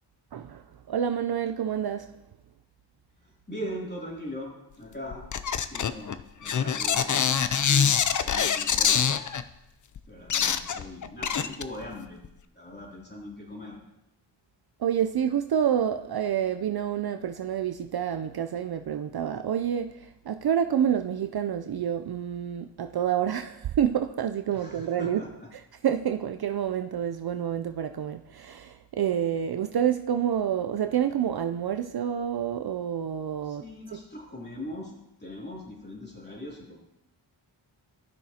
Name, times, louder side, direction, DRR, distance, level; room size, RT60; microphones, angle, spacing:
voice 1, 0.3-0.6 0.9-2.1 14.8-25.2 25.8-33.6 33.9-34.0, right 9 dB, 55° right, 8 dB, 0.5 m, -28 dB
voice 2, 3.2-5.2 5.5-9.3 10.1-12.2 12.5-13.8 24.5-25.5 33.4-34.9 35.2-36.8, left 1 dB, 20° left, -3 dB, 2.9 m, -40 dB
sound 1, 5.1-9.4 10.0-10.1 10.3-11.9 12.2-12.3, left 7 dB, 40° left, 0.5 m, -25 dB
14.0 x 6.1 x 2.8 m, 0.89 s
cardioid pair, 55°, 47 cm